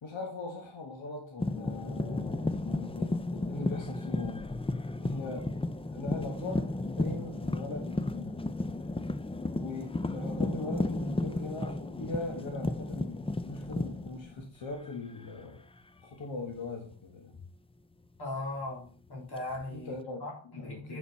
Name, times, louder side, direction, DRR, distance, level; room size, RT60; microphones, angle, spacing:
voice 1, 0.0-4.5 5.0-5.5 5.9-8.4 9.6-15.6 16.0-17.4 19.7-20.2 20.5-21.0, left 2 dB, 85° left, 2 dB, 1.5 m, -40 dB
sound 1, 1.4-14.9 15.2-15.6 17.3-17.5 19.4-20.0, left 2 dB, 15° left, 0.4 m, -34 dB
voice 2, 18.2-20.0 20.2-21.0, left 2 dB, 60° left, -3 dB, 3.5 m, -38 dB
7.1 x 7.0 x 4.1 m, 0.38 s
wide cardioid pair, 100°, 45 cm